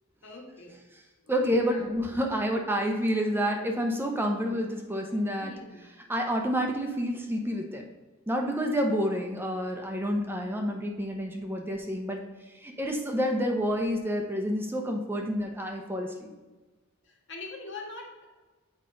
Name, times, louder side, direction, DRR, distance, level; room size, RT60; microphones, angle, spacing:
voice 1, 0.2-0.8 1.2-1.3 1.7-1.9 5.4-5.8 17.0-18.3, left 3 dB, 65° left, 0 dB, 1.6 m, -43 dB
voice 2, 1.3-5.5 6.1-7.8 8.3-12.2 12.6-16.3, equal, 10° right, 2 dB, 0.7 m, -29 dB
7.6 x 4.9 x 3.9 m, 1.2 s
head